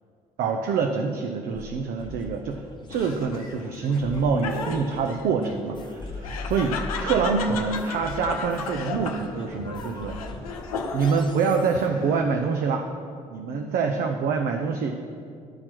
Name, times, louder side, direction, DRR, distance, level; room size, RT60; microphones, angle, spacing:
voice 1, 0.4-2.6 2.9-10.2 10.9-12.9 13.3-14.9, right 5 dB, 55° right, 3 dB, 0.6 m, -26 dB
sound 1, 1.5-11.9, left 2 dB, 25° left, 1.0 m, -40 dB
Laughter, 2.9-11.3 11.7-12.4, left 5 dB, 80° left, 0.7 m, -35 dB
11.5 x 4.4 x 6.0 m, 2.3 s
figure-of-eight pair, 50°, 18 cm